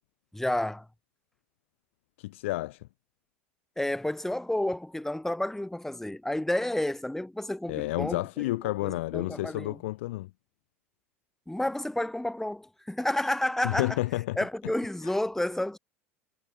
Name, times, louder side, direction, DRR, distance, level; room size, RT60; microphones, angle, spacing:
voice 1, 0.3-0.9 3.8-8.5 8.8-9.8 11.5-14.0 14.4-15.8, left 1 dB, 5° left, 2.6 m, -30 dB
voice 2, 2.2-2.9 7.7-10.3 13.6-14.4 15.0-15.1, left 18 dB, 70° left, 3.5 m, -30 dB
hypercardioid pair, 80°, 7 cm